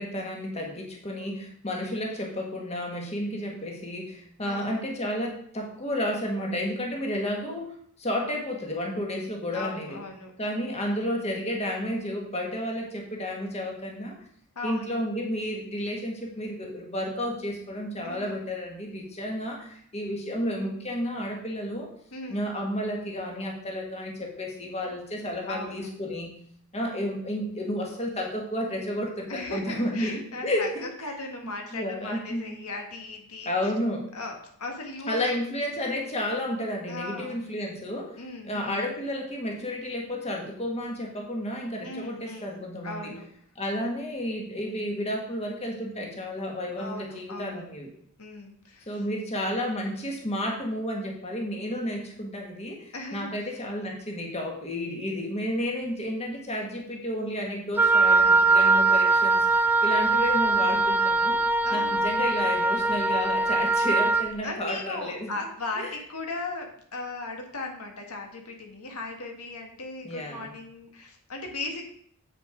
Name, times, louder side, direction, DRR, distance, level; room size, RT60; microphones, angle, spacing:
voice 1, 0.0-10.0 10.4-14.1 14.6-21.9 22.3-26.3 26.7-30.7 31.7-32.7 33.4-34.1 35.1-38.2 38.4-43.1 43.5-47.9 48.9-61.4 61.7-65.3 65.8-65.9 70.0-70.5, left 1 dB, 30° left, 1 dB, 1.7 m, -31 dB
voice 2, 4.4-4.9 9.5-10.3 14.5-15.0 18.0-18.4 22.1-22.4 25.5-25.9 29.3-33.7 34.1-35.3 36.9-37.4 38.2-38.8 41.8-42.6 42.8-43.2 46.8-47.7 48.2-49.0 52.9-53.5 61.6-62.1 64.4-71.8, left 2 dB, 85° left, 2 dB, 1.7 m, -37 dB
Wind instrument woodwind instrument, 57.8-64.3, right 3 dB, 10° right, 0.3 m, -22 dB
8.1 x 6.6 x 5.0 m, 0.64 s
head